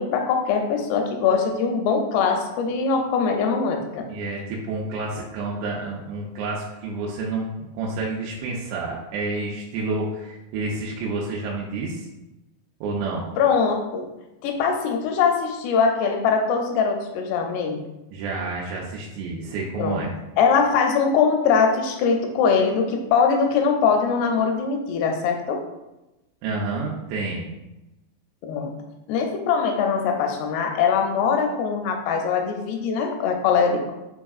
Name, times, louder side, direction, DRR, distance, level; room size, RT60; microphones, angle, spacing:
voice 1, 0.0-4.1 13.4-14.1 14.4-17.8 19.8-20.0 20.4-25.6 28.4-28.7 29.1-33.9, left 5 dB, 85° left, 3 dB, 2.4 m, -22 dB
voice 2, 4.1-12.1 12.8-13.3 18.1-20.2 26.4-27.5, right 3 dB, 90° right, -3 dB, 2.9 m, -29 dB
6.3 x 3.5 x 2.3 m, 0.98 s
omnidirectional pair, 5.0 m